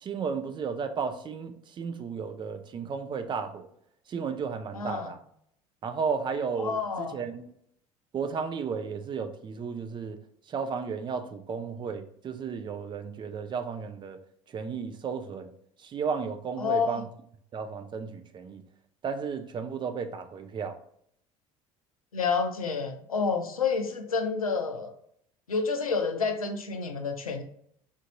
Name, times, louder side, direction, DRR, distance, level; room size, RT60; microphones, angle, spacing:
voice 1, 0.0-3.7 4.1-5.2 5.8-7.5 8.1-10.2 10.5-14.2 14.5-15.5 15.8-17.1 17.5-18.6 19.0-20.8, right 6 dB, 25° right, 0.4 m, -33 dB
voice 2, 4.7-5.1 6.6-7.2 16.6-17.0 22.1-24.9 25.5-27.4, left 5 dB, 85° left, 0.4 m, -29 dB
3.6 x 2.5 x 2.7 m
figure-of-eight pair, 60°, 18 cm